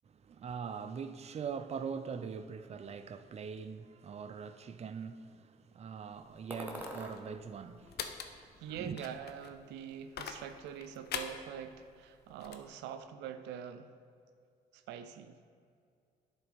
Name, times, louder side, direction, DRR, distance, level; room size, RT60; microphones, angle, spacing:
voice 1, 0.0-9.1, right 6 dB, 40° right, 0.5 m, -42 dB
sound 1, 6.1-12.7, left 7 dB, 70° left, 0.6 m, -45 dB
sound 2, 6.5-7.2 7.7-8.7 9.0-9.8, right 1 dB, 10° right, 1.3 m, -47 dB
voice 2, 8.3-13.9 14.7-15.4, right 8 dB, 90° right, 0.4 m, -44 dB
10.5 x 4.0 x 5.1 m
supercardioid pair, 70°, 17 cm